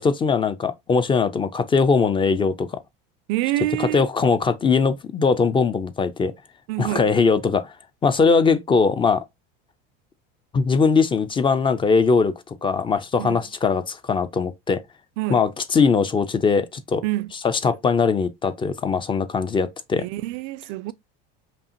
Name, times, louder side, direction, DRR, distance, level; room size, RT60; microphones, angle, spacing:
voice 1, 0.0-2.8 3.8-6.3 6.8-7.7 8.0-9.2 10.5-14.8 15.3-17.0 17.4-20.0, left 5 dB, 20° left, 0.4 m, -20 dB
voice 2, 3.3-4.1 6.7-7.1 13.2-13.4 15.2-15.4 17.0-17.3 20.0-20.9, right 17 dB, 65° right, 0.4 m, -26 dB
5.2 x 2.4 x 2.7 m
supercardioid pair, 115°, 29 cm